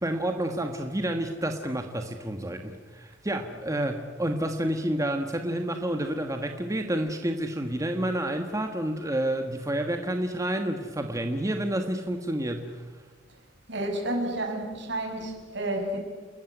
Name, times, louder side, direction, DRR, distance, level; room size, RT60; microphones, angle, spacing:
voice 1, 0.0-12.8, right 1 dB, 15° right, 5 dB, 1.4 m, -29 dB
voice 2, 13.7-16.0, right 1 dB, 65° right, 2 dB, 6.4 m, -30 dB
29.5 x 14.5 x 9.8 m, 1.4 s
head